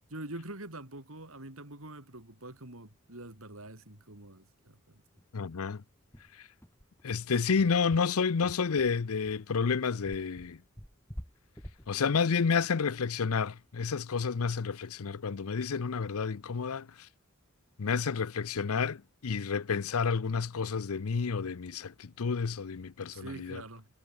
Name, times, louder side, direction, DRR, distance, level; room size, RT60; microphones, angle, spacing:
voice 1, 0.1-5.0 7.5-7.6 23.1-23.9, right 1 dB, 75° right, 4.5 m, -45 dB
sound 1, 3.2-3.3 3.6-3.7 4.1-4.2 4.6-4.7 5.2-13.6, equal, 10° left, 2.9 m, -49 dB
voice 2, 5.3-5.8 7.0-10.6 11.9-16.9 17.8-23.6, left 5 dB, 80° left, 0.6 m, -30 dB
head